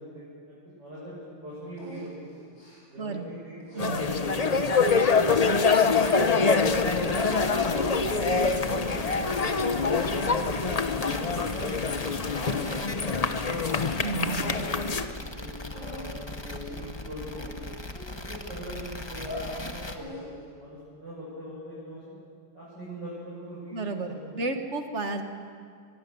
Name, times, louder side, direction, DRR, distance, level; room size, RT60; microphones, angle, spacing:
voice 1, 0.0-2.4 2.9-4.9 5.4-9.3 10.2-13.8 14.4-17.6 18.1-19.4 19.7-22.1 22.5-24.2, equal, 65° right, -9 dB, 7.9 m, -41 dB
sound 1, 1.8-3.1 3.6-4.7 5.2-6.3 6.8-7.4 7.8-9.6 9.8-10.5 10.9-11.3 12.0-12.1 12.4-12.9 13.3-13.4 13.6-13.8 14.2-14.6 14.9-15.2 15.7-16.1 16.6-16.9 17.4-18.5 19.0-19.5 19.9-20.5, left 1 dB, 80° left, 8.2 m, -42 dB
sound 2, 3.8-15.0, left 4 dB, 45° left, 0.4 m, -25 dB
sound 3, 6.6-20.0, left 2 dB, 15° left, 1.0 m, -39 dB
voice 2, 14.0-14.5 23.7-25.2, right 3 dB, 40° right, 6 dB, 1.8 m, -32 dB
23.0 x 22.0 x 7.0 m, 2.1 s
omnidirectional pair, 2.1 m